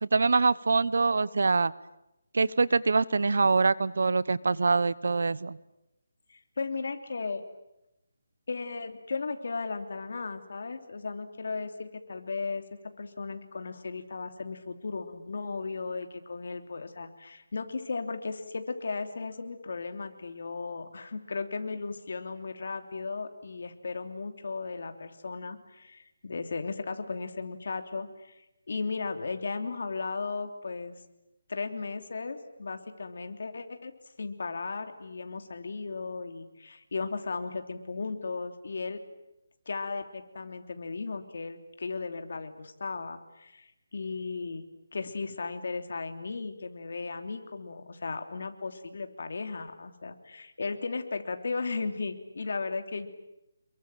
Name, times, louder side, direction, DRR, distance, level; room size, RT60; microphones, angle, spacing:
voice 1, 0.0-1.7 2.3-5.6, right 4 dB, 65° right, 20 dB, 0.9 m, -24 dB
voice 2, 6.3-7.4 8.5-12.6 13.0-31.0 31.5-33.9 34.2-39.0 39.6-44.6 44.9-53.1, left 4 dB, 55° left, 7 dB, 3.2 m, -36 dB
28.0 x 23.0 x 9.2 m, 0.89 s
hypercardioid pair, 175°, 0 cm